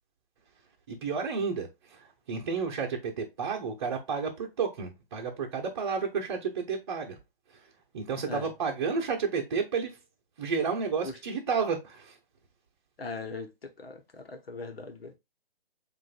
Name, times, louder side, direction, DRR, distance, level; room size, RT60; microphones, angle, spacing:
voice 1, 0.9-7.2 7.9-10.0 10.4-12.2, right 5 dB, 25° right, 0.9 m, -31 dB
voice 2, 13.0-15.1, left 3 dB, 70° left, 1.2 m, -40 dB
7.4 x 2.6 x 2.4 m
figure-of-eight pair, 150°, 31 cm